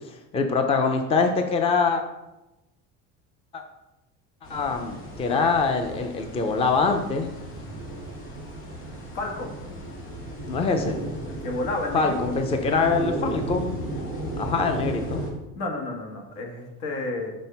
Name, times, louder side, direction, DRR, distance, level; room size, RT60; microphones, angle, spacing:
voice 1, 0.3-2.0 3.5-3.6 4.5-7.3 10.5-11.0 11.9-13.8 14.4-15.2, left 4 dB, 20° left, 5 dB, 0.5 m, -24 dB
sound 1, 4.4-15.3, right 1 dB, 40° left, 2.5 m, -34 dB
voice 2, 9.1-9.5 11.3-12.2 15.6-17.3, left 2 dB, 85° left, 1 dB, 1.8 m, -31 dB
6.2 x 4.1 x 5.5 m, 0.96 s
cardioid pair, 160°, 32 cm